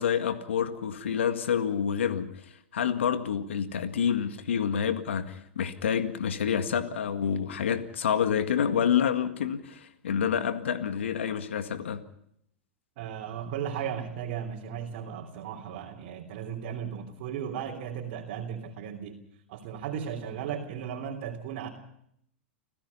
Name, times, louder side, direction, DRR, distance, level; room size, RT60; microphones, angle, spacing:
voice 1, 0.0-12.0, left 8 dB, 80° left, 9 dB, 1.9 m, -28 dB
voice 2, 13.0-19.2 19.5-21.7, right 8 dB, 55° right, -1 dB, 3.4 m, -36 dB
30.0 x 16.0 x 5.6 m, 0.73 s
hypercardioid pair, 110°, 6 cm